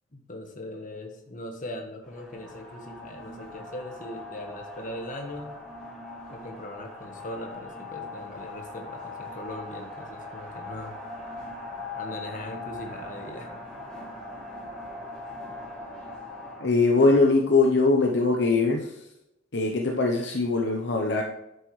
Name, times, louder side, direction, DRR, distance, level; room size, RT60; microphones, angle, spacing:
voice 1, 0.1-5.5 6.3-11.0 11.9-13.6, left 1 dB, 45° left, 4 dB, 1.4 m, -40 dB
sound 1, 2.0-16.7, left 2 dB, 5° left, 3.1 m, -40 dB
voice 2, 16.6-19.1 19.5-21.2, left 3 dB, 60° left, 1 dB, 0.9 m, -22 dB
10.0 x 8.1 x 3.2 m, 0.87 s
head